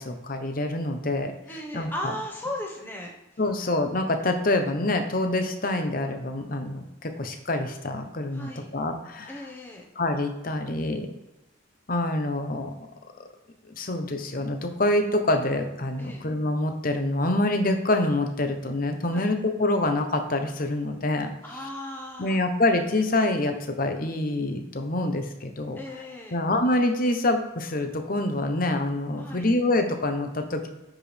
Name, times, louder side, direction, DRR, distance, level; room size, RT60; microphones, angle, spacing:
voice 1, 0.0-1.3 1.7-1.9 3.4-9.3 10.0-11.1 11.9-12.7 13.7-21.3 22.2-25.8 26.3-30.7, left 2 dB, 45° left, 5 dB, 0.9 m, -26 dB
voice 2, 1.5-3.1 8.3-8.7 9.3-9.9 16.0-16.3 19.1-19.3 21.4-22.4 25.7-26.4 29.1-29.5, left 1 dB, 10° left, -1 dB, 1.1 m, -36 dB
9.6 x 4.8 x 3.4 m, 0.98 s
head